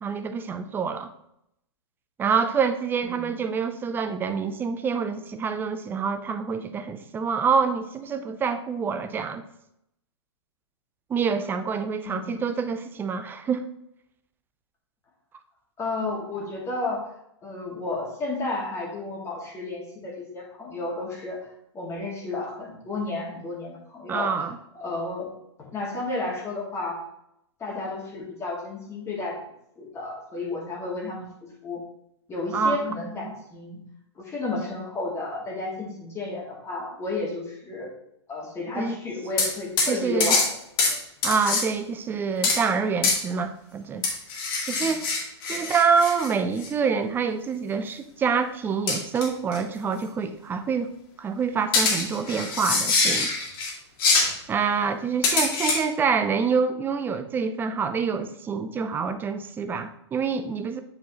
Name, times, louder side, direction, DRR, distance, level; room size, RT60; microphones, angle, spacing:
voice 1, 0.0-1.1 2.2-9.4 11.1-13.6 24.1-24.6 32.5-32.9 33.2-33.3 38.7-39.0 39.9-40.4 41.2-44.0 44.7-45.1 45.5-50.9 51.2-53.3 54.5-60.8, right 5 dB, 15° right, 9 dB, 0.5 m, -26 dB
voice 2, 3.0-3.3 12.0-12.4 15.8-17.0 17.4-21.5 21.7-24.4 24.7-25.3 25.6-27.0 27.6-29.4 29.8-31.3 31.6-31.8 32.3-33.8 34.2-37.9 38.3-40.6 40.9-41.0 44.7-45.0 45.5-45.7, left 2 dB, 20° left, -2 dB, 2.0 m, -32 dB
sound 1, 39.4-39.5 39.8-39.9 40.2-40.5 40.8-41.0 41.2-41.6 42.4-42.6 43.0-43.2 44.0-46.3 46.6-46.7 48.9-49.3 49.5-49.6 51.7-53.7 54.0-54.3 55.2-55.8, left 3 dB, 50° left, 2.1 m, -24 dB
8.5 x 4.7 x 3.0 m, 0.78 s
hypercardioid pair, 115°, 15 cm